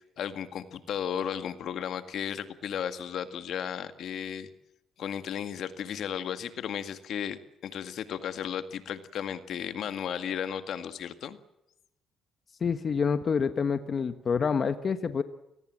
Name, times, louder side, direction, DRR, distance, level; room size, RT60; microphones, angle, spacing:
voice 1, 0.2-4.5 5.0-11.4, left 8 dB, 70° left, 10 dB, 1.9 m, -34 dB
voice 2, 12.6-15.2, left 6 dB, 45° left, 10 dB, 1.4 m, -27 dB
28.0 x 19.5 x 7.6 m, 0.86 s
cardioid pair, 90°, 0 cm